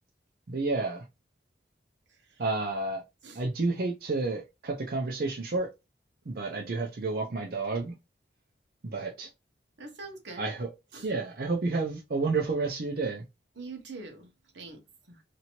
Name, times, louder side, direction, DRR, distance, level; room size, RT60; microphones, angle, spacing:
voice 1, 0.5-1.0 2.4-3.0 3.4-5.7 6.3-7.9 8.8-9.3 10.4-10.7 11.0-13.2, right 3 dB, 55° right, 0.5 m, -30 dB
voice 2, 9.8-10.5 10.9-11.1 13.6-14.3 14.5-14.8 15.1-15.2, right 3 dB, 85° right, 1.0 m, -43 dB
2.9 x 2.6 x 2.9 m
head